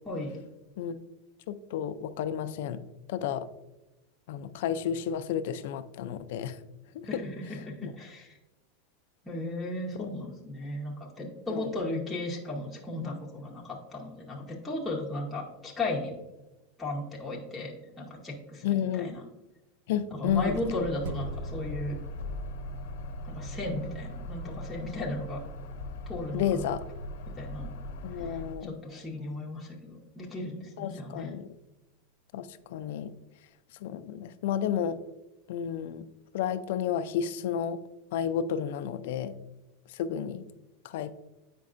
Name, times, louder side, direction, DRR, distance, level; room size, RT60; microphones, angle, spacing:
voice 1, 0.0-0.4 7.0-8.4 9.2-16.1 16.8-19.3 20.1-22.0 23.2-25.4 26.1-26.7 27.3-27.7 28.2-31.4, left 2 dB, 5° left, -4 dB, 0.8 m, -36 dB
voice 2, 1.5-2.8 3.1-3.5 4.3-6.6 7.0-7.1 7.8-7.9 9.9-10.1 11.5-11.7 18.6-19.1 19.9-20.6 26.3-26.8 28.0-28.7 30.8-31.5 32.3-32.5 32.7-33.1 33.8-35.0 35.5-36.0 36.3-37.8 38.1-39.3 40.0-40.4 40.8-41.1, left 8 dB, 60° left, 12 dB, 0.3 m, -31 dB
sound 1, 20.3-28.6, left 1 dB, 75° left, 0.8 m, -40 dB
sound 2, 21.0-29.9 30.3-30.4, right 2 dB, 70° right, 0.4 m, -46 dB
8.3 x 5.2 x 2.5 m, 1.0 s
supercardioid pair, 175°, 0 cm